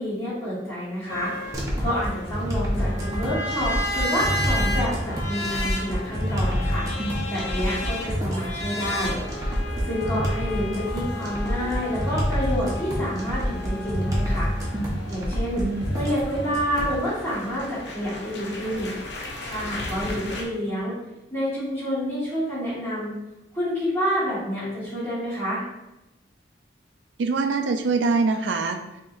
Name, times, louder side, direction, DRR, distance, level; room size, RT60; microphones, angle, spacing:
voice 1, 0.0-1.3 1.8-6.8 7.3-9.2 9.8-14.5 15.1-15.6 15.9-18.9 19.5-21.0 21.3-23.2 23.5-25.6, equal, 15° left, -11 dB, 1.2 m, -28 dB
sound 1, 1.1-20.4, left 1 dB, 65° left, 0.6 m, -34 dB
sound 2, 1.5-17.0, equal, 20° right, 0.7 m, -27 dB
voice 2, 15.6-16.0 27.2-28.8, right 4 dB, 70° right, 6 dB, 0.4 m, -24 dB
3.9 x 2.9 x 2.4 m, 0.93 s
head